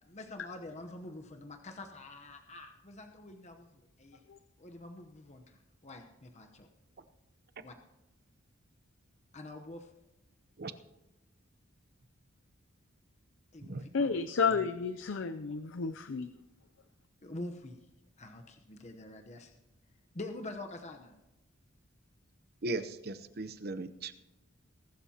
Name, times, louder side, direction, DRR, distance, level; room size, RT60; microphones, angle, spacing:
voice 1, 0.0-4.2 4.6-6.7 7.6-7.8 9.3-9.9 13.5-14.2 14.5-14.7 17.2-17.9 18.2-19.5 20.1-21.2, left 2 dB, 35° left, 4 dB, 0.9 m, -46 dB
voice 2, 13.9-16.3, left 5 dB, 65° left, 10 dB, 0.5 m, -31 dB
voice 3, 22.6-24.1, right 2 dB, 50° right, 12 dB, 0.8 m, -37 dB
21.5 x 12.0 x 2.9 m, 1.0 s
head